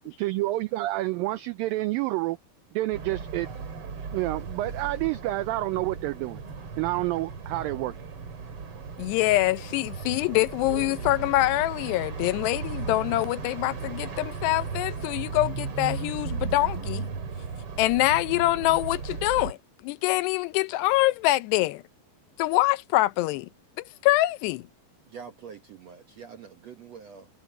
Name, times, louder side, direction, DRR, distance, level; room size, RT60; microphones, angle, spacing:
voice 1, 0.1-2.4 2.7-3.5 4.1-6.4 6.8-7.9, right 18 dB, 85° right, 2.0 m, -28 dB
sound 1, 2.9-19.5, right 5 dB, 40° right, 2.8 m, -36 dB
voice 2, 9.0-17.1 17.8-19.6 19.8-21.8 22.4-23.5 23.8-24.6, left 18 dB, 85° left, 2.8 m, -25 dB
voice 3, 25.1-27.3, right 6 dB, 70° right, 1.6 m, -45 dB
omnidirectional pair, 4.7 m